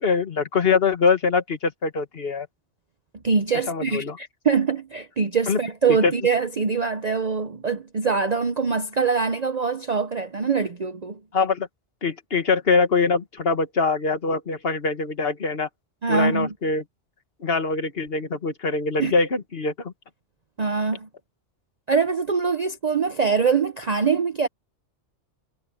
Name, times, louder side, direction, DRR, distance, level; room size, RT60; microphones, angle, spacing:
voice 1, 0.0-2.5 3.7-4.2 5.5-5.6 5.9-6.1 11.3-11.7 12.0-15.7 16.1-16.8 17.4-19.9, left 4 dB, 55° left, 1.8 m, -23 dB
voice 2, 3.2-11.2 16.0-16.5 19.0-19.1 20.6-21.1 21.9-24.5, right 5 dB, 40° right, 0.8 m, -23 dB
omnidirectional pair, 1.2 m